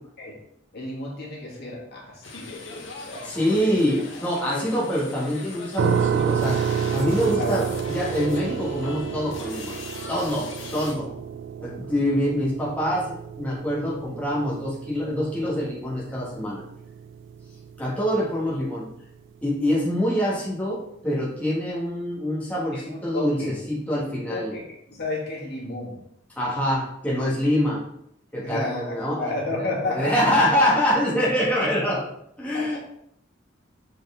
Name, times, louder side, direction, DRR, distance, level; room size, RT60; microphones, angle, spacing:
voice 1, 0.7-3.7 4.5-4.7 7.0-7.7 8.1-8.3 22.7-23.6 23.9-24.0 24.3-24.6 24.9-26.0 28.4-30.3 32.5-32.8, left 2 dB, 55° left, -4 dB, 1.9 m, -32 dB
sound 1, 2.2-11.0, left 3 dB, 70° left, 1.1 m, -40 dB
voice 2, 3.2-9.8 10.1-11.2 11.6-16.6 17.8-18.9 19.4-24.5 26.4-27.8 28.3-29.3 29.6-32.0 32.4-32.8, equal, 5° left, -7 dB, 1.6 m, -25 dB
sound 2, 5.8-18.6, right 7 dB, 60° right, 0.3 m, -30 dB
6.5 x 4.5 x 3.7 m, 0.73 s
head